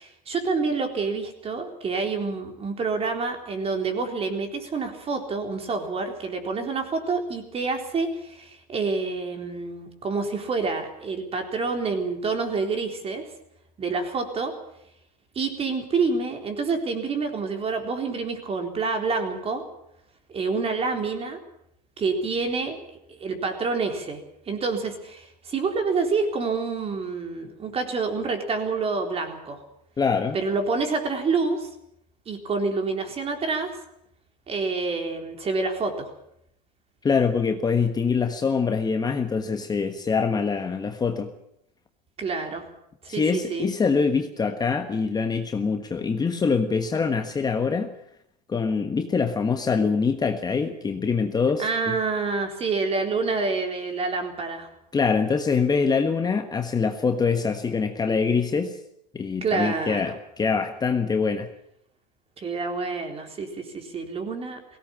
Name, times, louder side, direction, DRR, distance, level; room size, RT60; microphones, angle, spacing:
voice 1, 0.0-13.3 13.8-14.5 15.4-19.6 20.3-21.4 22.0-22.8 23.1-24.2 24.5-29.6 30.3-31.7 32.3-33.7 34.5-36.1 42.2-42.6 43.0-43.7 51.6-54.7 59.4-60.1 62.4-64.6, right 4 dB, 30° right, 5 dB, 3.9 m, -27 dB
voice 2, 30.0-30.4 37.0-41.3 43.1-47.9 48.5-52.0 54.9-58.8 59.1-61.5, left 5 dB, 20° left, 6 dB, 1.4 m, -24 dB
17.5 x 17.0 x 8.9 m, 0.77 s
supercardioid pair, 120°, 21 cm